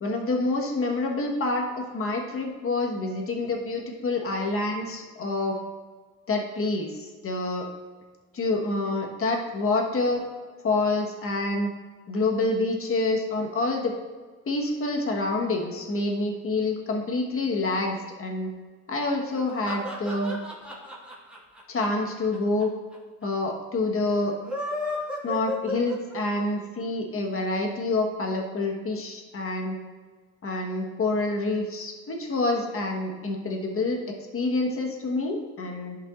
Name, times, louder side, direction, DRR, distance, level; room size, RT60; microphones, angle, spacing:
voice 1, 0.0-5.6 6.3-7.7 8.3-10.2 10.6-11.7 12.1-13.9 14.5-18.5 18.9-20.4 21.7-22.7 23.2-24.3 25.2-29.8 30.4-34.0 34.3-36.0, left 2 dB, 45° left, 1 dB, 1.5 m, -27 dB
sound 1, 19.3-22.6 22.9-23.0 23.2-23.3 24.3-26.4, left 1 dB, 5° right, 2.0 m, -33 dB
11.0 x 5.5 x 2.6 m, 1.5 s
cardioid pair, 90°, 30 cm